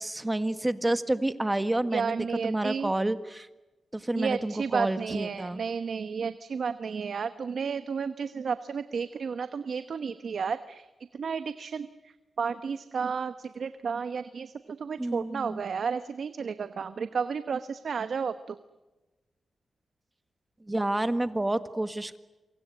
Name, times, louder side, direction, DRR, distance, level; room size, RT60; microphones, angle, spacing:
voice 1, 0.0-2.2 2.4-3.5 3.9-5.6 15.0-15.6 20.7-22.2, right 1 dB, 15° right, 11 dB, 1.8 m, -29 dB
voice 2, 1.9-2.9 4.2-10.9 11.1-18.6, right 6 dB, 70° right, 11 dB, 1.1 m, -32 dB
27.5 x 25.0 x 8.0 m, 1.1 s
cardioid pair, 75°, 0 cm